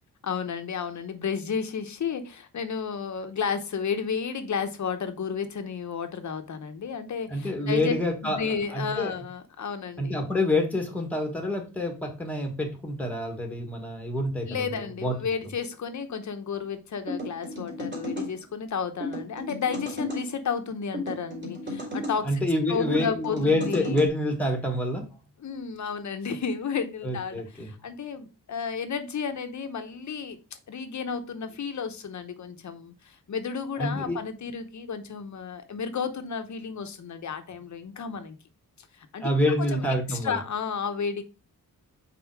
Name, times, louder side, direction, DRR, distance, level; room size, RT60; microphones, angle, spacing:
voice 1, 0.2-7.9 8.2-10.2 14.5-22.4 22.7-24.1 25.4-30.4 30.7-38.4 39.0-39.3 39.6-41.2, left 6 dB, 55° left, 0.9 m, -32 dB
voice 2, 7.3-9.1 10.0-14.5 15.0-15.1 22.2-25.0 27.0-27.7 33.8-34.2 39.2-40.4, left 1 dB, 5° left, 1.5 m, -27 dB
sound 1, 17.1-18.3 19.0-20.2 20.9-22.2 22.9-24.1, left 1 dB, 35° right, 3.4 m, -34 dB
5.5 x 4.3 x 4.7 m
wide cardioid pair, 145°, 35 cm